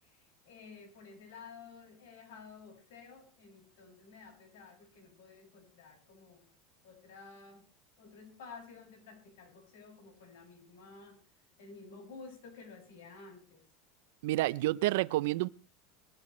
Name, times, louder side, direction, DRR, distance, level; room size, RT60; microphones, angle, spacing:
voice 1, 0.0-6.5 6.8-7.7 8.0-11.2 11.6-13.6, left 4 dB, 80° left, 2 dB, 7.1 m, -52 dB
voice 2, 14.2-15.5, right 17 dB, 70° right, 18 dB, 0.7 m, -29 dB
22.0 x 13.5 x 3.3 m, 0.32 s
supercardioid pair, 155°, 0 cm